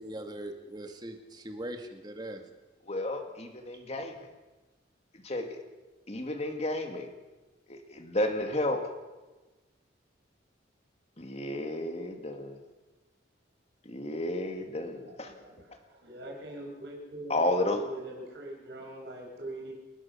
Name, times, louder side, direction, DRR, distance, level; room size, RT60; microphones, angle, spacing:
voice 1, 0.0-2.4, right 1 dB, 20° right, 5 dB, 2.0 m, -40 dB
voice 2, 2.9-4.3 5.1-5.6 6.1-7.1 7.7-8.8 11.2-12.6 13.8-15.3 17.3-17.8, left 1 dB, 35° left, 5 dB, 2.4 m, -32 dB
voice 3, 14.8-19.7, right 1 dB, 60° right, -1 dB, 6.9 m, -43 dB
29.0 x 12.5 x 7.2 m, 1.2 s
head